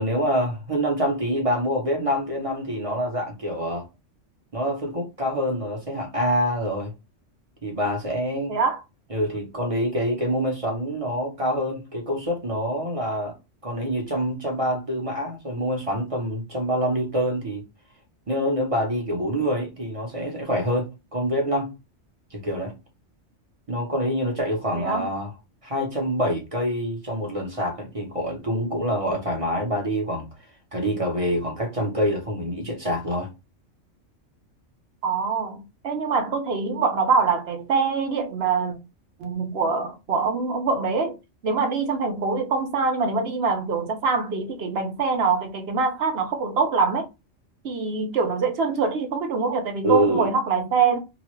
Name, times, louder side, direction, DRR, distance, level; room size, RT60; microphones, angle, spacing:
voice 1, 0.0-3.9 4.5-6.9 7.6-8.6 9.1-13.4 13.6-17.6 18.3-21.7 22.3-22.7 23.7-25.3 25.6-30.3 30.7-33.3 49.8-50.3, equal, 30° right, 0.8 m, -26 dB
voice 2, 8.5-8.8 24.8-25.1 35.0-38.8 39.2-41.2 41.4-47.0 47.6-51.0, right 5 dB, 60° right, 0.8 m, -24 dB
2.9 x 2.3 x 3.0 m
omnidirectional pair, 1.3 m